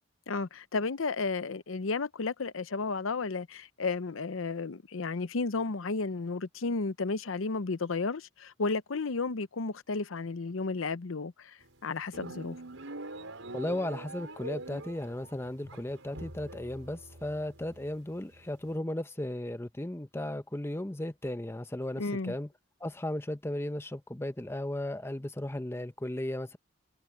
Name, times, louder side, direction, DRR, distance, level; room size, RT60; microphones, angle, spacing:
voice 1, 0.3-12.6 22.0-22.3, left 4 dB, 90° left, 0.7 m, -33 dB
sound 1, 11.6-18.7, right 2 dB, 90° right, 6.0 m, -44 dB
voice 2, 13.5-22.5 22.8-26.6, left 1 dB, 10° left, 0.7 m, -35 dB
head